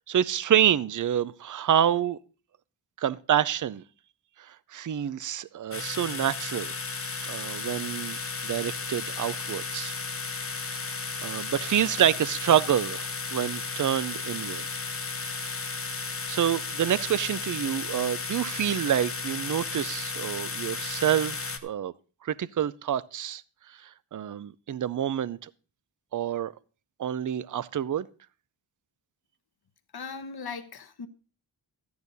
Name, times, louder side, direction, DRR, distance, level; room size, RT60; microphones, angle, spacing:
voice 1, 0.1-2.2 3.0-3.8 4.4-6.7 7.2-8.2 8.4-9.9 10.5-10.8 11.2-14.6 15.4-15.6 16.3-21.9 22.2-23.4 23.8-25.5 26.1-26.5 27.0-28.1, right 10 dB, 45° right, 0.5 m, -27 dB
sound 1, 5.7-21.6, left 4 dB, 30° left, 1.0 m, -34 dB
voice 2, 29.9-31.1, left 5 dB, 55° left, 1.1 m, -38 dB
13.5 x 9.6 x 4.0 m
wide cardioid pair, 125°, 46 cm